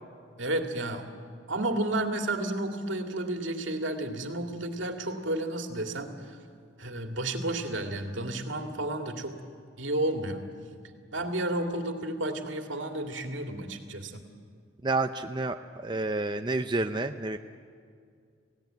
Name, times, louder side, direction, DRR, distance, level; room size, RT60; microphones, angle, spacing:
voice 1, 0.4-1.1 1.5-6.4 6.8-9.3 9.8-10.4 11.1-14.2, right 1 dB, 75° right, 5 dB, 2.2 m, -31 dB
voice 2, 14.8-15.6 15.8-17.4, right 2 dB, 25° right, 6 dB, 0.5 m, -29 dB
28.5 x 16.5 x 9.2 m, 2.2 s
head